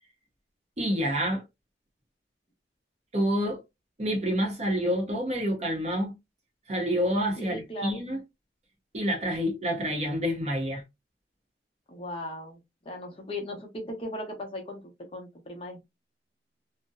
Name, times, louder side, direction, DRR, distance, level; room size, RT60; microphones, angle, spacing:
voice 1, 0.8-1.4 3.1-3.6 4.0-6.1 6.7-8.2 8.9-10.8, equal, 40° right, 0.7 m, -28 dB
voice 2, 7.4-8.0 11.9-12.6 12.8-15.8, left 1 dB, 30° left, 0.7 m, -38 dB
2.7 x 2.0 x 2.3 m
head